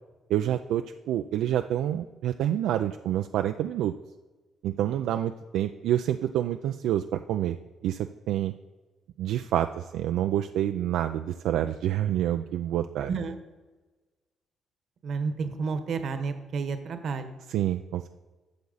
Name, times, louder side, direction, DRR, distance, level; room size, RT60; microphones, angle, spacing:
voice 1, 0.3-3.9 4.6-7.6 7.8-8.5 9.2-13.1 17.5-18.1, right 11 dB, 85° right, 7 dB, 0.3 m, -28 dB
voice 2, 15.0-17.3, right 5 dB, 60° right, 9 dB, 1.0 m, -31 dB
11.5 x 7.0 x 4.0 m, 1.2 s
cardioid pair, 90°, 0 cm